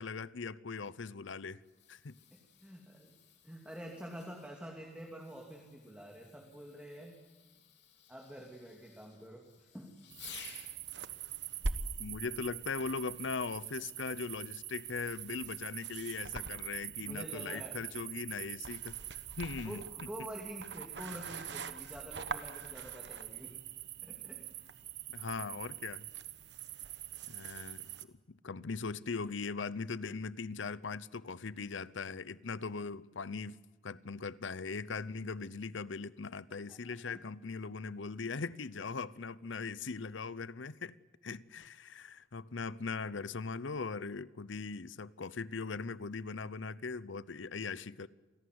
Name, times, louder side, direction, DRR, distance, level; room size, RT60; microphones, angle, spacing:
voice 1, 0.0-1.6 1.9-2.1 12.0-19.8 25.1-26.1 27.3-27.9 28.3-33.6 33.8-40.9 41.2-48.1, left 4 dB, 80° left, 0.7 m, -40 dB
Fireworks, 1.6-10.8 12.8-13.1 13.8-13.9, left 8 dB, 60° left, 3.8 m, -57 dB
voice 2, 2.3-3.1 3.4-7.1 8.1-10.0 17.1-17.8 19.6-23.5 24.0-24.4 36.5-37.2, equal, 5° right, 2.6 m, -48 dB
sound 1, 10.1-28.0, right 7 dB, 65° right, 1.2 m, -43 dB
28.0 x 18.0 x 9.5 m
head